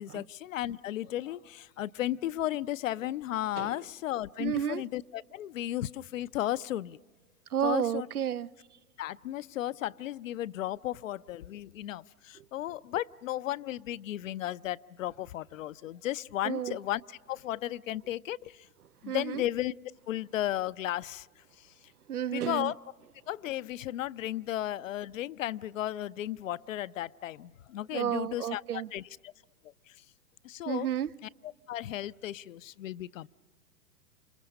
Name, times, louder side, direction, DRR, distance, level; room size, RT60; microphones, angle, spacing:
voice 1, 0.0-7.0 7.6-8.1 9.0-18.7 19.0-19.7 20.1-21.7 22.3-22.8 23.3-29.3 29.9-30.0 30.4-30.9 31.2-31.3 31.7-33.3, left 13 dB, 60° left, 0.6 m, -35 dB
voice 2, 4.4-4.8 7.5-8.5 12.4-12.5 16.4-16.8 19.1-19.4 22.1-22.7 27.9-28.9 30.7-31.1, right 10 dB, 85° right, 0.6 m, -31 dB
29.0 x 26.5 x 5.3 m
figure-of-eight pair, 105°, 44 cm